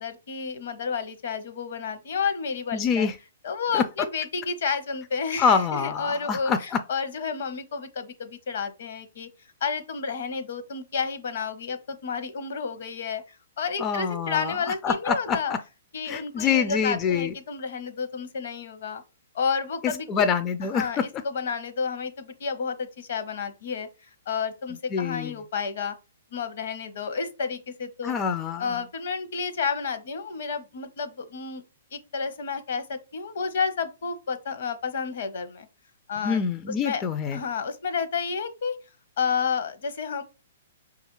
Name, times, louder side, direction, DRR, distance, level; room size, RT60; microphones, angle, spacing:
voice 1, 0.0-3.1 3.4-9.3 9.6-15.5 15.9-19.0 19.3-20.1 20.7-23.9 24.3-25.9 26.3-28.2 28.6-31.6 31.9-35.7 36.1-37.0 37.3-38.8 39.2-40.2, left 5 dB, 65° left, 0.7 m, -31 dB
voice 2, 2.7-3.2 3.7-3.8 5.4-6.8 13.8-14.6 14.8-15.6 16.1-17.3 19.8-21.0 24.9-25.4 28.0-28.8 36.2-37.4, left 6 dB, 25° left, 0.3 m, -26 dB
5.1 x 2.4 x 3.0 m
hypercardioid pair, 130°, 0 cm